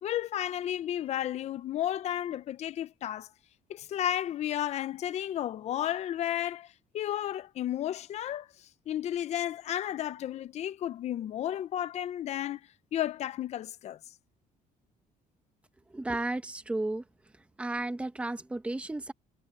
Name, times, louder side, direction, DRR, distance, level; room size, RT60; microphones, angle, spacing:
voice 1, 0.0-3.3 3.7-12.6 12.9-14.0, left 11 dB, 45° left, 0.6 m, -33 dB
voice 2, 15.9-17.0 17.6-19.1, right 2 dB, 10° right, 1.1 m, -33 dB
cardioid pair, 150°, 15 cm